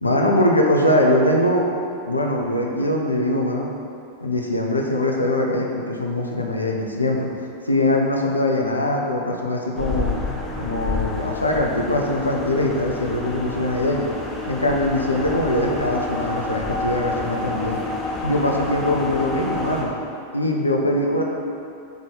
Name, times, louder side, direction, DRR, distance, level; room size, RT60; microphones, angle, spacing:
voice 1, 0.0-1.7 2.0-3.7 4.2-7.3 7.6-10.1 10.6-14.1 14.5-17.8 18.2-19.9 20.3-21.2, left 1 dB, 80° left, 0 dB, 0.4 m, -22 dB
sound 1, 9.8-19.8, left 3 dB, 15° left, 0.7 m, -29 dB
3.6 x 3.6 x 3.9 m, 2.6 s
figure-of-eight pair, 90°, 0 cm